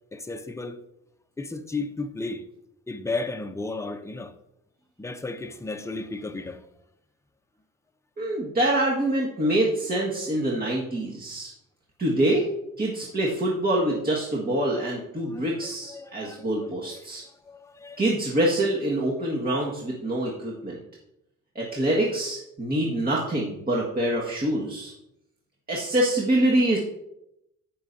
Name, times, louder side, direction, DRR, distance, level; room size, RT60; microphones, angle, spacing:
voice 1, 0.1-0.8 1.4-2.5 2.9-4.3 5.0-6.7 15.3-15.4 15.9-17.0 17.4-18.0, left 3 dB, 10° left, 0.7 m, -34 dB
voice 2, 8.2-11.5 12.0-12.4 12.8-17.2 18.0-20.8 21.6-24.9 25.7-26.8, right 1 dB, 30° right, 1.8 m, -25 dB
15.0 x 6.3 x 2.8 m
cardioid pair, 90°, 30 cm